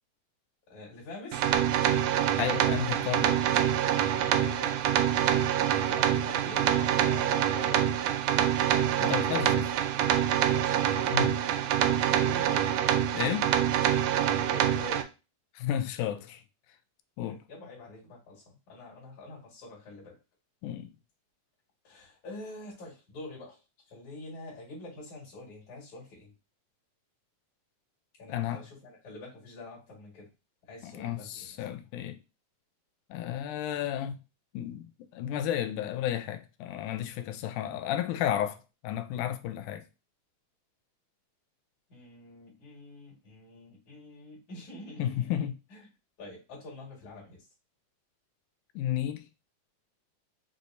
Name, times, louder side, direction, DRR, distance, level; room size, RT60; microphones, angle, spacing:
voice 1, 0.7-1.5 4.1-4.9 5.2-5.4 5.9-7.8 10.4-11.9 12.2-13.0 14.1-15.1 17.3-20.2 21.8-23.6 23.9-26.3 28.2-30.3 30.7-31.7 41.9-45.4 45.7-45.9 46.2-47.5, left 2 dB, 70° left, 3.2 m, -46 dB
sound 1, 1.3-15.0, right 10 dB, 90° right, 1.4 m, -26 dB
voice 2, 2.4-3.4 8.8-9.7 11.1-11.4 13.1-13.4 15.6-16.4 17.2-17.4 20.6-20.9 28.3-28.6 30.8-32.2 33.1-34.2 34.5-39.9 45.0-45.5 48.8-49.3, left 11 dB, 90° left, 2.1 m, -32 dB
6.3 x 2.6 x 2.6 m
omnidirectional pair, 3.5 m